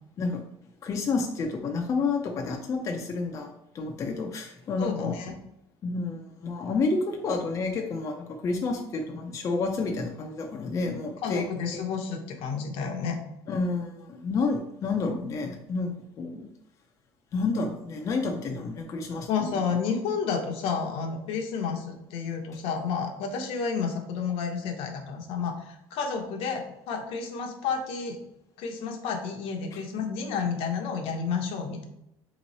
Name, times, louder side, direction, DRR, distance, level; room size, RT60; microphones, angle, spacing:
voice 1, 0.8-5.2 5.8-11.4 11.7-11.9 13.5-16.5 17.3-19.5 29.7-29.8, left 3 dB, 30° left, 2 dB, 0.4 m, -30 dB
voice 2, 4.8-5.3 11.2-13.2 19.3-28.2 28.6-31.8, left 5 dB, 70° left, 4 dB, 0.8 m, -31 dB
3.6 x 3.0 x 4.0 m, 0.81 s
cardioid pair, 150°, 10 cm